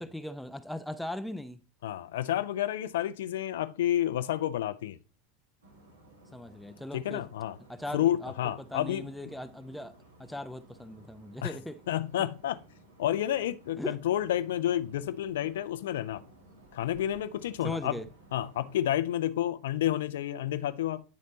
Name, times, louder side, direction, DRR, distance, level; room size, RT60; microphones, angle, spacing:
voice 1, 0.0-1.6 6.3-7.3 7.7-11.8 13.8-14.0 17.6-18.1, left 1 dB, 5° left, 0.5 m, -39 dB
voice 2, 1.8-5.0 6.9-7.6 7.9-9.1 11.4-11.6 11.9-12.6 13.0-16.2 16.7-17.9 18.3-21.0, left 12 dB, 70° left, 0.5 m, -30 dB
sound 1, 5.6-18.8, right 2 dB, 85° right, 2.2 m, -56 dB
9.5 x 4.2 x 3.9 m
figure-of-eight pair, 80°, 0 cm